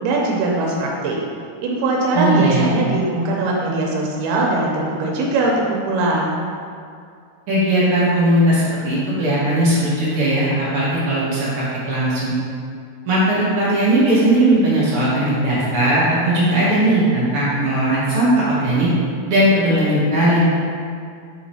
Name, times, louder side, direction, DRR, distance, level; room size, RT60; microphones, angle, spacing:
voice 1, 0.0-1.2 1.6-6.3, right 2 dB, 90° right, -2 dB, 2.7 m, -21 dB
voice 2, 2.1-2.7 7.5-12.3 13.0-18.9 19.3-20.4, right 1 dB, 60° right, -9 dB, 1.5 m, -18 dB
6.4 x 3.8 x 4.2 m, 2.3 s
omnidirectional pair, 4.3 m